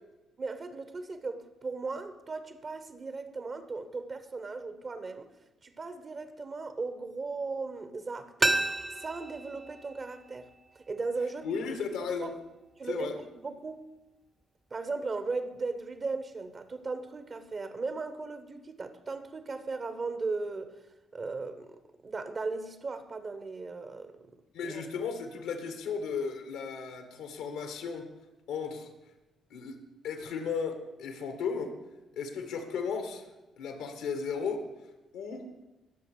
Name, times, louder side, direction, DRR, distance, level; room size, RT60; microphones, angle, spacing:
voice 1, 0.4-5.3 5.6-8.6 9.0-10.5 10.7-11.7 12.0-12.4 12.8-13.8 14.7-20.7 21.1-24.3 24.6-24.9, right 3 dB, 40° right, 1.5 m, -37 dB
sound 1, 8.4-11.2 11.5-11.6, right 2 dB, 25° right, 1.0 m, -32 dB
voice 2, 11.4-12.3 12.9-13.2 24.5-28.1 28.5-28.9 29.5-31.7 32.1-34.7 35.1-35.5, left 5 dB, 70° left, 1.8 m, -35 dB
20.5 x 7.2 x 5.1 m
hypercardioid pair, 45°, 0 cm